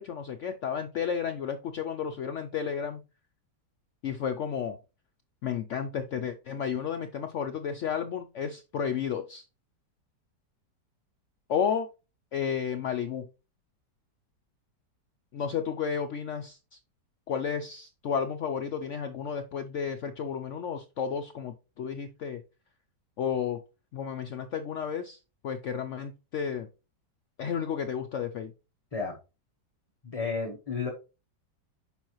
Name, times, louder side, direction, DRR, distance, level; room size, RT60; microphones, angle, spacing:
voice 1, 0.0-3.0 4.0-4.8 5.4-9.4 11.5-11.9 12.3-13.3 15.3-16.8 17.3-22.4 23.2-23.6 23.9-26.7 27.4-28.5, left 7 dB, 75° left, 7 dB, 0.6 m, -32 dB
voice 2, 30.0-30.9, left 4 dB, 25° left, 0 dB, 0.8 m, -32 dB
7.1 x 5.1 x 3.0 m, 0.29 s
omnidirectional pair, 1.9 m